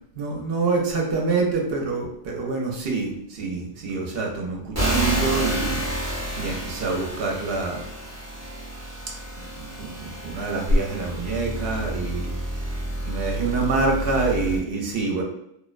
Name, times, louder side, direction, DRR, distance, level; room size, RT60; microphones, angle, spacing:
voice 1, 0.2-7.9 9.6-12.3 13.0-15.2, right 3 dB, 60° right, 0 dB, 0.7 m, -26 dB
sound 1, 4.7-14.6, right 1 dB, 20° right, 0.5 m, -29 dB
2.5 x 2.1 x 2.4 m, 0.75 s
omnidirectional pair, 1.2 m